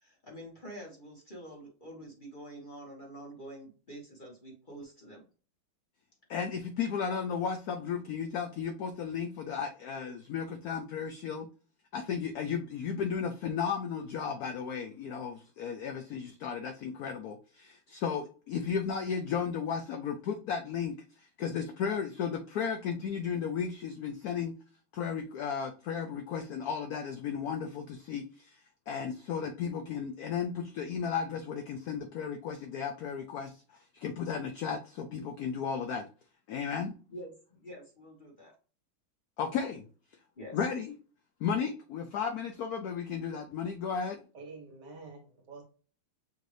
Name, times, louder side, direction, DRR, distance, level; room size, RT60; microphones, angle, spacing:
voice 1, 0.0-5.2 37.1-38.5 40.4-40.6, right 1 dB, 30° left, 1.2 m, -47 dB
voice 2, 6.3-11.5 11.9-24.5 24.9-28.6 28.9-36.0 36.5-37.0 39.4-39.9 40.5-40.9 41.4-44.2, left 6 dB, 80° left, 0.8 m, -34 dB
voice 3, 44.3-45.7, right 3 dB, 60° right, 1.6 m, -48 dB
6.5 x 2.6 x 3.2 m
omnidirectional pair, 2.2 m